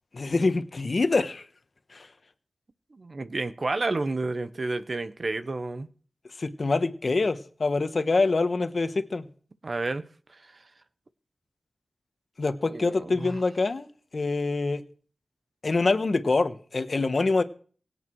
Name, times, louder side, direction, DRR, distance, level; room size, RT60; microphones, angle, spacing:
voice 1, 0.1-1.5 1.9-2.1 6.4-9.3 12.4-14.8 15.6-17.4, left 3 dB, 50° left, 1.2 m, -25 dB
voice 2, 2.9-5.9 9.6-10.0 12.7-13.4, right 2 dB, 45° right, 1.0 m, -30 dB
24.0 x 8.3 x 4.7 m
wide cardioid pair, 100°, 0 cm